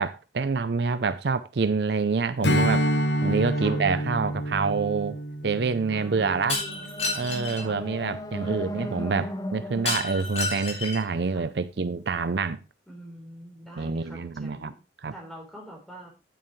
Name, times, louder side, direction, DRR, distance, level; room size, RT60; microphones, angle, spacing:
voice 1, 0.0-2.9 3.2-5.2 5.4-6.6 7.2-12.6 13.8-14.7 15.0-15.1, right 4 dB, 65° right, 0.5 m, -27 dB
Strum, 2.4-7.2, equal, 75° left, 1.0 m, -27 dB
voice 2, 5.9-6.9 7.5-7.8 8.4-9.3 11.3-11.4 12.9-14.7 15.1-16.1, equal, ahead, 4.0 m, -44 dB
Shatter, 6.5-7.6 9.9-11.1, left 3 dB, 35° left, 3.5 m, -30 dB
sound 1, 6.5-11.6, equal, 20° left, 0.7 m, -37 dB
9.1 x 9.0 x 3.2 m
head